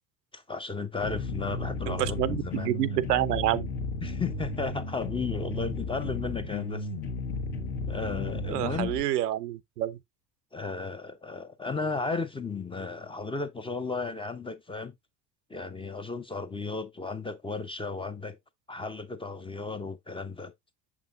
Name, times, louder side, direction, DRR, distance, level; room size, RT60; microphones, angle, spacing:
voice 1, 0.3-2.7 4.0-6.9 7.9-8.9 10.5-14.9 15.5-18.4 18.7-20.5, left 4 dB, 10° left, 0.5 m, -34 dB
sound 1, 1.0-9.0, left 3 dB, 55° left, 1.3 m, -34 dB
voice 2, 1.9-3.7 8.5-10.0, right 13 dB, 75° right, 0.6 m, -28 dB
6.8 x 5.9 x 2.3 m
figure-of-eight pair, 60°, 48 cm